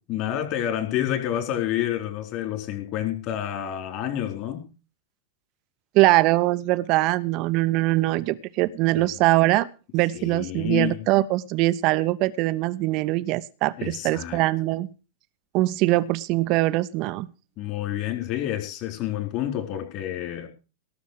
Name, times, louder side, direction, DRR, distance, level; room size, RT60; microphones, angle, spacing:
voice 1, 0.1-4.7 8.9-9.1 10.1-11.0 13.8-14.4 17.6-20.5, left 12 dB, 40° left, 5 dB, 4.4 m, -29 dB
voice 2, 5.9-9.7 9.9-14.9 15.5-17.3, right 18 dB, 40° right, 15 dB, 0.9 m, -22 dB
18.5 x 7.2 x 6.4 m, 0.33 s
figure-of-eight pair, 90°, 0 cm